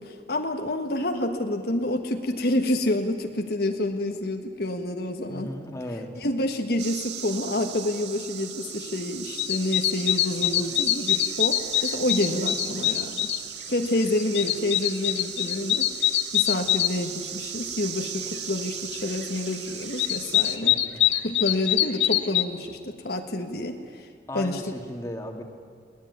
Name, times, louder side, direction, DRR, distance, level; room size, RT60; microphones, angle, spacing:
voice 1, 0.0-5.5 6.2-13.3 13.7-15.9 16.3-20.8 21.2-24.0 24.3-24.6, left 1 dB, 60° left, 4 dB, 1.5 m, -28 dB
voice 2, 5.3-6.1 20.5-21.3 24.3-25.4, left 1 dB, 15° left, 3 dB, 2.1 m, -36 dB
sound 1, 6.8-20.6, right 9 dB, 70° right, 1.7 m, -37 dB
sound 2, 9.4-13.4 13.8-16.9 19.4-19.5 19.8-22.4, left 14 dB, 90° left, 0.9 m, -24 dB
22.5 x 19.0 x 9.5 m, 2.3 s
head